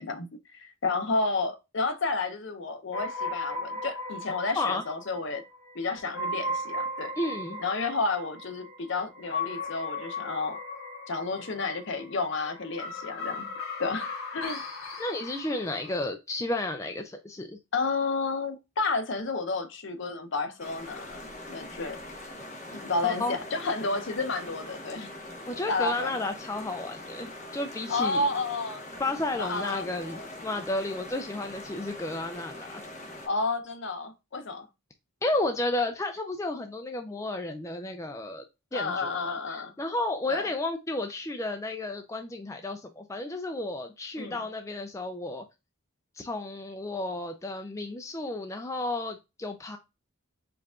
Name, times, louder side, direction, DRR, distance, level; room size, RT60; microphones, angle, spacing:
voice 1, 0.0-5.4 5.7-7.1 7.6-10.6 11.1-13.5 13.8-14.6 17.7-22.0 22.7-25.1 25.7-26.1 27.9-28.8 29.4-30.3 33.2-34.7 38.7-39.7 40.3-40.5 44.2-44.4, left 3 dB, 55° left, 0.7 m, -31 dB
sound 1, 2.9-16.0, left 2 dB, 85° left, 1.6 m, -37 dB
voice 2, 7.2-7.6 15.0-17.6 23.0-23.4 25.5-28.3 29.0-32.8 35.2-38.4 38.7-45.4 46.2-49.8, left 2 dB, 15° left, 0.3 m, -32 dB
sound 2, 20.6-33.3, left 1 dB, 35° left, 0.9 m, -42 dB
4.6 x 2.4 x 3.6 m
head